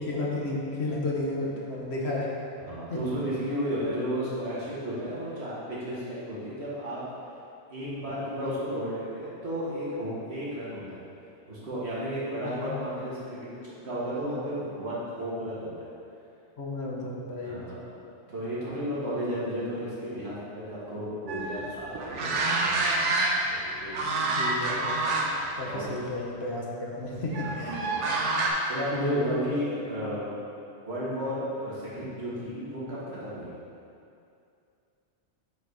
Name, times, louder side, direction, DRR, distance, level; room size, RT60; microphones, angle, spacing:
voice 1, 0.0-2.3 2.9-3.0 7.8-8.2 12.4-12.7 16.6-17.6 24.3-24.9 25.6-27.9 28.9-29.5 30.0-30.1, left 2 dB, 65° left, -3 dB, 1.3 m, -32 dB
voice 2, 2.6-7.0 7.7-11.0 11.5-15.9 17.4-17.8 18.3-22.5 23.0-23.1 23.6-24.3 25.7-25.8 27.4-28.0 28.7-30.4 30.8-33.5, equal, 65° right, -9 dB, 2.2 m, -33 dB
sound 1, 21.3-23.6 23.9-25.5 25.9-26.1 27.3-28.5, right 2 dB, 90° right, 1.1 m, -27 dB
7.8 x 4.1 x 4.8 m, 2.5 s
omnidirectional pair, 1.2 m